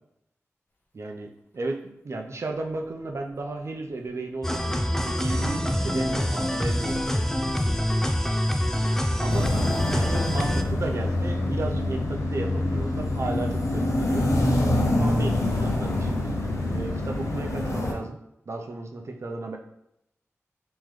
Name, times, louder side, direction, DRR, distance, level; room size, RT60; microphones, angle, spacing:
voice 1, 0.9-7.4 9.2-14.3 15.0-16.4 16.6-18.2 18.5-19.6, right 2 dB, 60° right, 2 dB, 0.5 m, -34 dB
sound 1, 2.6-3.6 3.9-13.4, left 1 dB, 45° left, 0.7 m, -40 dB
sound 2, 4.4-10.6, equal, 10° left, 0.4 m, -26 dB
sound 3, 9.3-17.9, left 1 dB, 80° left, 0.7 m, -25 dB
3.7 x 3.0 x 3.1 m, 0.80 s
cardioid pair, 55°, 5 cm